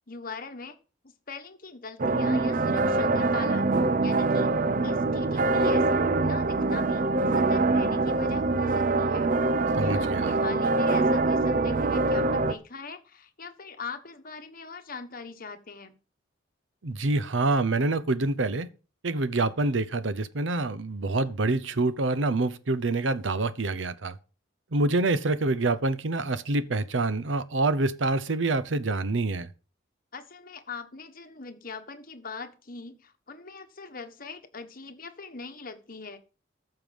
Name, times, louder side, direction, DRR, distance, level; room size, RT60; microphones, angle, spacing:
voice 1, 0.1-0.8 1.3-4.5 4.8-5.9 6.2-7.1 7.3-9.3 9.8-15.9 30.1-36.2, left 4 dB, 50° left, 1.4 m, -42 dB
sound 1, 2.0-12.5, right 3 dB, 45° right, 0.7 m, -24 dB
voice 2, 9.8-10.4 16.8-18.7 19.0-24.2 24.7-29.5, right 2 dB, 90° right, 0.8 m, -26 dB
14.0 x 5.8 x 5.2 m
head